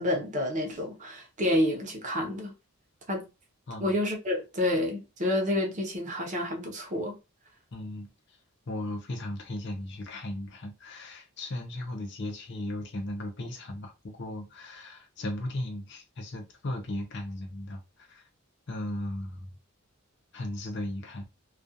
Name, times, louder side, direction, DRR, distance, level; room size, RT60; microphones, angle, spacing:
voice 1, 0.0-2.5 3.1-3.3 3.8-7.2, left 1 dB, 35° right, 0.7 m, -29 dB
voice 2, 3.7-4.0 7.7-8.4 8.7-18.2 18.7-19.5 20.3-21.3, left 1 dB, 50° left, 0.6 m, -36 dB
2.4 x 2.3 x 2.6 m
head